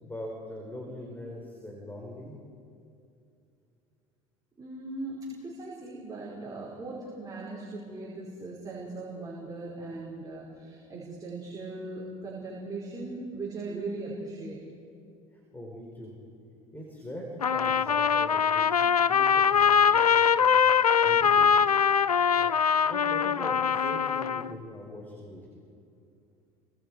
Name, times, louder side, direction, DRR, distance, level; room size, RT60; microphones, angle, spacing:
voice 1, 0.0-2.4 15.3-16.1 16.7-21.8 22.4-25.6, left 1 dB, 10° left, 0 dB, 4.6 m, -42 dB
voice 2, 4.6-14.6, right 2 dB, 20° right, -5 dB, 5.4 m, -39 dB
Trumpet, 17.4-24.5, left 7 dB, 90° left, 0.4 m, -23 dB
30.0 x 25.5 x 4.9 m, 2.6 s
figure-of-eight pair, 70°, 19 cm